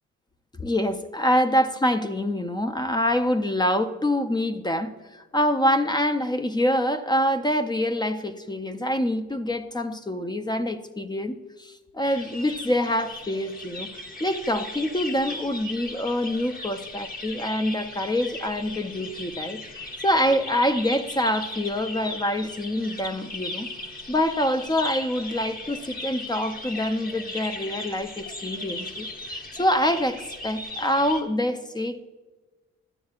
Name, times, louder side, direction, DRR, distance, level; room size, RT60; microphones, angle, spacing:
voice 1, 0.5-13.9 14.2-19.6 20.0-23.7 24.1-32.0, left 1 dB, 15° left, 9 dB, 0.5 m, -25 dB
sound 1, 12.0-31.2, left 2 dB, 30° left, 1.2 m, -37 dB
13.0 x 9.3 x 2.4 m, 1.3 s
cardioid pair, 90°, 30 cm